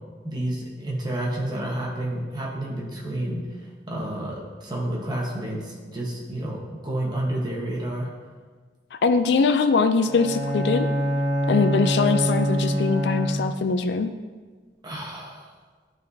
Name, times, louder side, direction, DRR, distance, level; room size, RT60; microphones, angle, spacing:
voice 1, 0.2-3.4 3.9-8.1 14.8-15.5, right 1 dB, 25° right, -3 dB, 1.2 m, -30 dB
voice 2, 8.9-10.9 11.5-14.1, left 4 dB, 70° left, 9 dB, 0.4 m, -22 dB
Bowed string instrument, 10.0-13.7, equal, 15° left, 1.1 m, -25 dB
11.5 x 4.1 x 2.7 m, 1.5 s
head